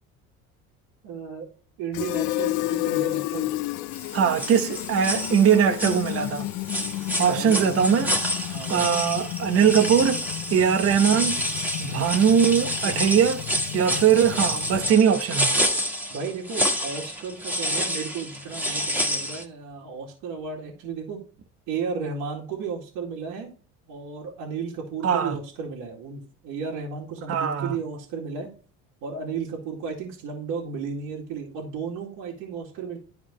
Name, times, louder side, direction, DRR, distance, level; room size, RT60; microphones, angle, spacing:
voice 1, 1.0-1.5 1.8-3.6 7.3-8.1 8.5-8.9 16.1-21.2 21.7-23.5 23.9-28.5 29.0-33.0, right 5 dB, 75° right, 2.2 m, -34 dB
Fill (with liquid), 1.9-15.0, left 16 dB, 70° left, 0.6 m, -32 dB
sound 1, 3.9-4.1 4.4-6.4 6.7-19.4, equal, 5° right, 1.6 m, -28 dB
voice 2, 4.1-6.5 7.2-8.1 8.7-11.4 11.8-13.5 13.7-15.6 25.0-25.4 27.3-27.8, right 8 dB, 45° right, 1.0 m, -21 dB
11.0 x 4.4 x 3.1 m
cardioid pair, 110°, 31 cm